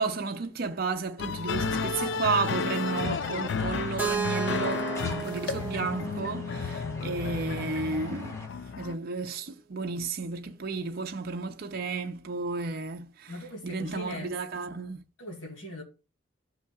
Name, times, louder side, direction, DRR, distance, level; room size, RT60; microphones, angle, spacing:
voice 1, 0.0-8.3 8.8-13.3 13.6-15.0, right 4 dB, 50° right, 0.6 m, -32 dB
sound 1, 1.2-9.0, left 5 dB, 60° left, 0.3 m, -32 dB
sound 2, 1.5-8.5, left 1 dB, 15° left, 1.1 m, -44 dB
Keyboard (musical), 4.0-7.9, right 5 dB, 10° right, 1.2 m, -35 dB
voice 2, 13.3-14.3 15.2-15.8, left 1 dB, 90° left, 2.5 m, -40 dB
13.0 x 5.6 x 2.4 m
head